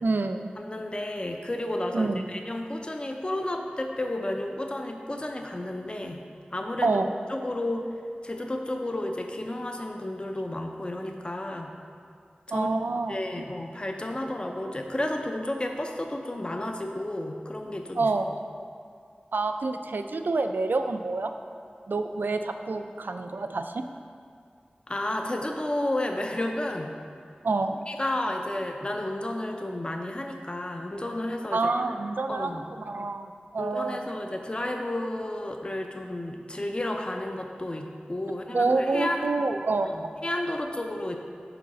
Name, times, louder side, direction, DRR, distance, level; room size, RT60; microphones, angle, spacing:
voice 1, 0.0-0.5 1.9-2.3 6.8-7.1 12.5-13.2 18.0-18.3 19.3-21.3 21.9-23.8 27.4-27.8 31.5-34.1 38.5-39.9, right 3 dB, 80° right, 7 dB, 0.3 m, -27 dB
voice 2, 0.6-6.2 6.5-7.0 7.3-7.9 8.2-11.7 12.5-12.7 13.1-18.1 24.9-26.9 27.9-31.6 32.3-32.6 33.6-39.4 39.8-41.2, left 1 dB, 30° left, 3 dB, 0.5 m, -32 dB
5.0 x 4.0 x 5.8 m, 2.2 s
wide cardioid pair, 65°, 3 cm